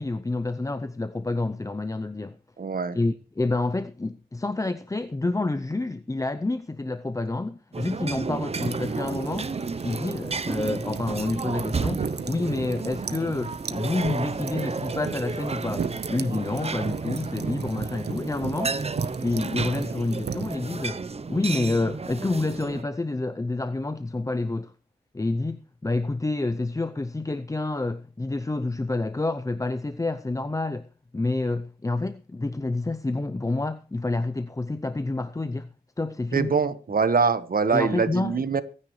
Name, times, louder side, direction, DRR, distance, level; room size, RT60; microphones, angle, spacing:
voice 1, 0.0-2.4 2.9-9.5 9.8-18.8 19.2-21.0 21.3-24.7 25.1-30.9 31.1-35.7 36.0-36.5 37.7-38.4, left 2 dB, 20° left, 0.6 m, -28 dB
voice 2, 2.6-3.0 36.3-38.6, right 5 dB, 60° right, 1.2 m, -23 dB
sound 1, 7.7-22.8, right 4 dB, 35° right, 0.7 m, -32 dB
sound 2, 8.6-20.6, right 6 dB, 80° right, 1.0 m, -36 dB
24.0 x 9.8 x 3.2 m
wide cardioid pair, 100°, 17 cm